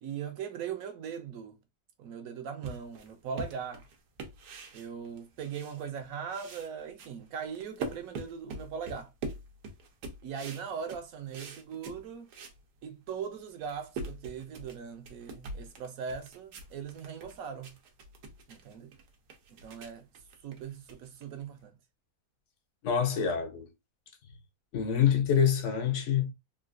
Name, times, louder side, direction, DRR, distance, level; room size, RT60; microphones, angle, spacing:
voice 1, 0.0-1.6 2.0-3.8 4.7-9.1 10.2-12.3 12.8-17.7 18.5-18.9 19.6-20.0 20.4-21.7, right 7 dB, 65° right, 1.0 m, -40 dB
sound 1, 2.6-6.0 6.3-12.6 13.0-13.1 13.5-21.6, right 3 dB, 85° right, 1.3 m, -44 dB
voice 2, 22.8-23.7 24.7-26.3, left 8 dB, 60° left, 0.8 m, -26 dB
3.8 x 2.4 x 2.4 m
omnidirectional pair, 1.7 m